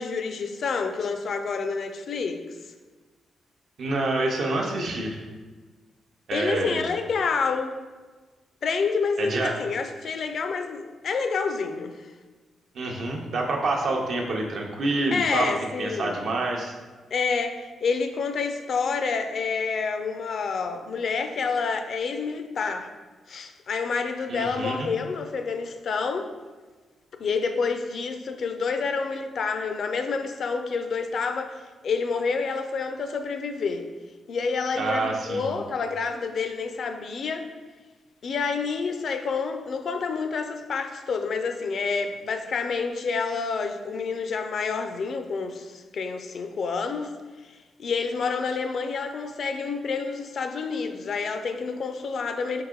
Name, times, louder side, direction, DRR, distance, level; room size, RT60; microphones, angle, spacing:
voice 1, 0.0-2.4 6.3-7.8 8.6-11.9 15.1-16.2 17.1-22.9 23.3-26.3 27.2-33.9 34.3-37.5 38.2-47.1 47.4-52.6, left 5 dB, 60° left, 7 dB, 0.4 m, -28 dB
voice 2, 3.8-5.2 6.3-6.9 9.2-9.5 12.7-15.5 15.8-16.7 24.3-24.8 34.8-35.5, right 2 dB, 65° right, 1 dB, 0.7 m, -27 dB
4.7 x 2.9 x 3.7 m, 1.3 s
cardioid pair, 95°, 0 cm